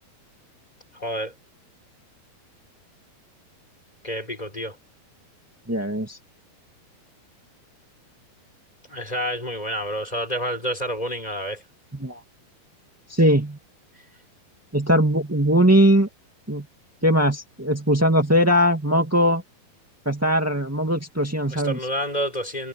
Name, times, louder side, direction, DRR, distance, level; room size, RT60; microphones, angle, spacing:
voice 1, 0.9-1.3 4.0-4.8 8.9-11.6 21.5-22.7, equal, 10° left, 4.8 m, -29 dB
voice 2, 5.7-6.2 12.0-12.2 13.1-13.6 14.7-16.1 16.5-16.6 17.0-19.4 20.0-21.8, equal, 10° right, 0.9 m, -20 dB
omnidirectional pair, 4.3 m